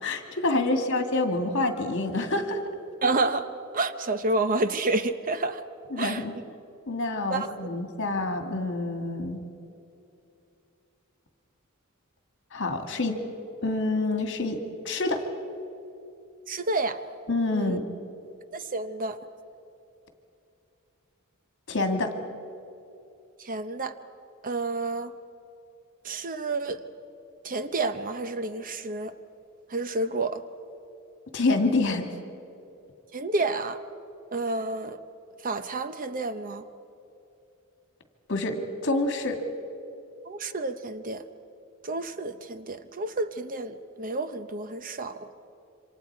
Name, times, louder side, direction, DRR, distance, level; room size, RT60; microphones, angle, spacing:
voice 1, 0.0-2.6 5.9-6.3 6.9-9.4 12.5-13.2 13.6-15.2 17.3-17.8 21.7-22.1 31.3-32.1 38.3-39.4, left 2 dB, 60° left, 5 dB, 2.1 m, -27 dB
voice 2, 3.0-3.5 3.7-5.6 6.0-6.2 7.3-7.5 16.5-17.0 17.5-17.8 18.5-19.2 23.4-24.0 24.4-25.1 26.0-26.8 27.4-29.1 29.7-30.4 33.1-33.8 34.3-35.0 35.4-36.6 40.3-41.2 41.8-45.3, right 2 dB, 40° right, 11 dB, 0.8 m, -29 dB
27.5 x 25.5 x 4.7 m, 2.7 s
head